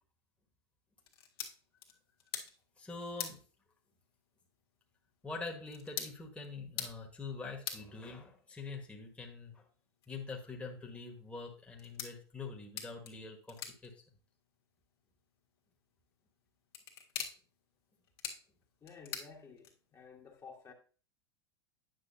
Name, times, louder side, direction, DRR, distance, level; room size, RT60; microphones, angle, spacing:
sound 1, 1.0-20.1, left 8 dB, 70° left, 1.6 m, -48 dB
voice 1, 2.8-3.4 5.2-9.6 10.1-13.9, left 4 dB, 10° left, 1.4 m, -44 dB
voice 2, 18.8-20.7, left 5 dB, 25° left, 1.4 m, -53 dB
9.3 x 6.1 x 2.7 m
hypercardioid pair, 95°, 13 cm